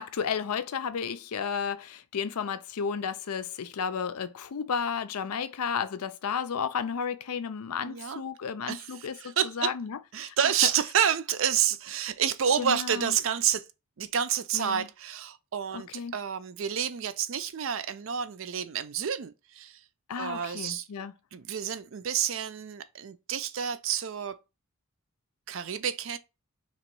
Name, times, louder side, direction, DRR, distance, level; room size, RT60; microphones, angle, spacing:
voice 1, 0.0-10.4 12.6-13.1 14.5-14.9 15.7-16.1 20.1-21.1, left 6 dB, 85° left, 0.5 m, -33 dB
voice 2, 7.8-8.2 8.7-9.7 10.1-13.7 14.0-19.8 20.2-20.9 21.3-24.4 25.5-26.2, right 8 dB, 60° right, 0.4 m, -29 dB
3.0 x 3.0 x 4.5 m
head